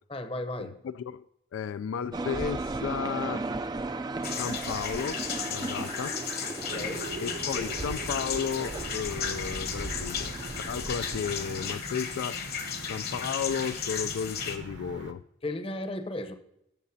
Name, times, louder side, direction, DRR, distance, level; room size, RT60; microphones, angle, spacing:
voice 1, 0.1-0.8 6.6-7.1 15.4-16.3, left 1 dB, 30° left, 0.8 m, -35 dB
voice 2, 0.8-1.2 1.5-3.5 4.3-6.2 7.2-12.4 12.9-15.2, left 7 dB, 75° left, 0.3 m, -34 dB
sound 1, 2.1-11.8, right 2 dB, 20° right, 0.3 m, -36 dB
sound 2, 4.2-14.6, left 7 dB, 50° left, 1.1 m, -35 dB
sound 3, 6.7-15.1, right 3 dB, 60° right, 1.0 m, -43 dB
17.5 x 7.3 x 2.7 m
head